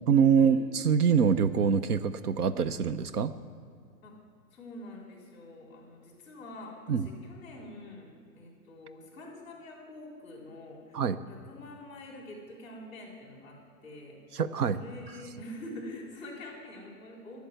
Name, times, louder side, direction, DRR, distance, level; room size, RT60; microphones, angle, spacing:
voice 1, 0.1-3.3 6.9-7.1 10.9-11.2 14.3-14.8, right 7 dB, 70° right, 13 dB, 0.7 m, -24 dB
voice 2, 4.5-11.0 11.3-14.2 14.7-17.4, left 1 dB, 15° left, -2 dB, 3.6 m, -46 dB
12.0 x 8.2 x 7.9 m, 2.3 s
hypercardioid pair, 175°, 48 cm